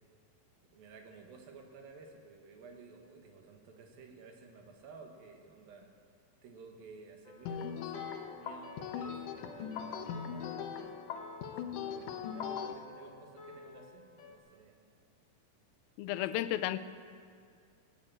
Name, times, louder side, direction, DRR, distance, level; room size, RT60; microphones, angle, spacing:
voice 1, 0.7-5.9 6.4-11.0 11.5-14.8 16.1-16.3, right 4 dB, 80° right, 3 dB, 3.3 m, -54 dB
sound 1, 7.2-14.4, left 4 dB, 40° left, 1.9 m, -52 dB
sound 2, 7.5-12.7, left 7 dB, 70° left, 2.1 m, -40 dB
voice 2, 16.0-16.8, left 13 dB, 90° left, 13 dB, 2.4 m, -33 dB
17.5 x 8.9 x 8.9 m, 2.3 s
omnidirectional pair, 4.1 m